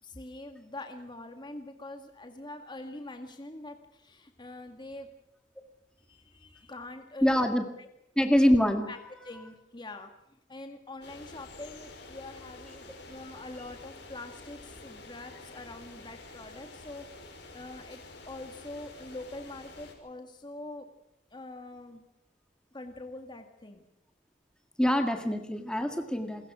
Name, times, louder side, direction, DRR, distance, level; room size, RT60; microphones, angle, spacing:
voice 1, 0.0-5.1 6.0-7.9 8.9-9.0 9.2-20.9 21.3-22.0 22.7-23.9, left 2 dB, 25° left, 5 dB, 2.0 m, -44 dB
voice 2, 7.2-7.6 8.2-8.9 24.8-26.5, equal, 5° left, 5 dB, 1.9 m, -25 dB
sound 1, 11.0-19.9, left 2 dB, 70° left, 6.1 m, -49 dB
28.0 x 22.0 x 6.2 m, 0.85 s
head